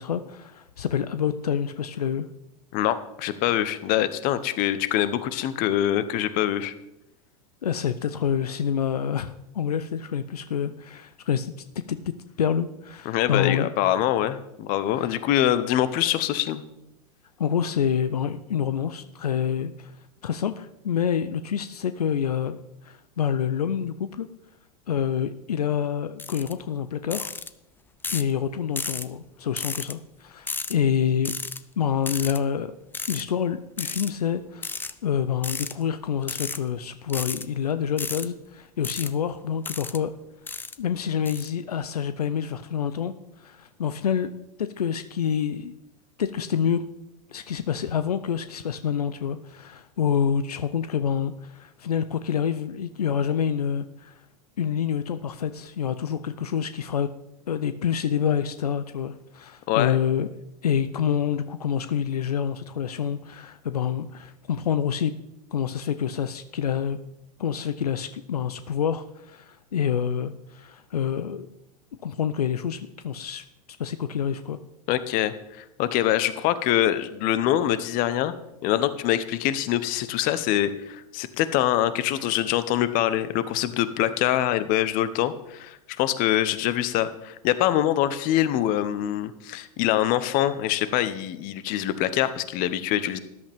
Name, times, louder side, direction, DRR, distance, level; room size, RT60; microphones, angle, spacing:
voice 1, 0.0-2.3 7.6-11.5 11.9-13.7 14.9-15.1 17.4-19.9 20.2-22.6 22.8-24.3 24.9-27.3 28.1-31.3 31.8-32.7 33.1-40.1 40.8-44.3 44.6-45.7 46.2-46.9 47.3-54.1 54.6-57.1 57.5-60.3 60.6-65.1 65.5-67.0 67.4-71.5 72.0-73.4 73.8-74.6, left 8 dB, 90° left, 12 dB, 0.5 m, -27 dB
voice 2, 2.7-6.7 13.1-16.6 59.7-60.0 74.9-78.3 78.6-93.2, left 12 dB, 50° left, 14 dB, 0.9 m, -24 dB
sound 1, 26.2-26.5 27.1-27.5 28.0-28.3 28.8-29.1 29.6-29.9 30.5-30.7 31.2-31.6 32.1-32.4 32.9-33.2 33.8-34.1 34.6-34.9 35.4-35.7 36.2-36.6 37.1-37.4 38.0-38.3 38.8-39.1 39.6-40.0 40.5-40.8 41.3-41.5, left 4 dB, 10° left, 0.5 m, -33 dB
13.5 x 10.5 x 3.6 m, 0.88 s
hypercardioid pair, 95°, 19 cm